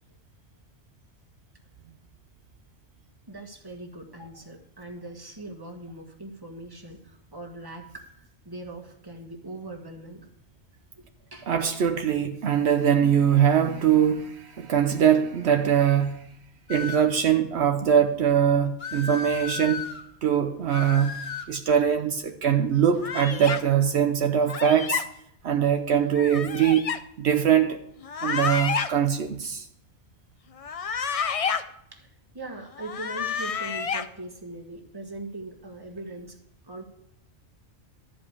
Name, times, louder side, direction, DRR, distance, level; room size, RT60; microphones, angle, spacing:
voice 1, 3.3-10.3 10.9-11.0 11.3-11.5 24.7-24.8 31.9-36.4 36.6-36.8, right 2 dB, 20° right, 1.6 m, -41 dB
voice 2, 11.5-16.2 16.7-19.8 20.2-21.1 21.5-25.0 25.4-26.9 27.2-27.8 28.2-29.7, right 8 dB, 75° right, 1.0 m, -22 dB
sound 1, 16.7-17.2 18.8-20.0 20.7-21.5, left 5 dB, 60° left, 1.4 m, -35 dB
sound 2, 23.0-23.6 24.5-25.0 26.1-27.0 28.0-28.9 30.6-31.6 32.7-34.0, left 6 dB, 45° left, 0.5 m, -29 dB
13.0 x 5.2 x 8.5 m
omnidirectional pair, 1.2 m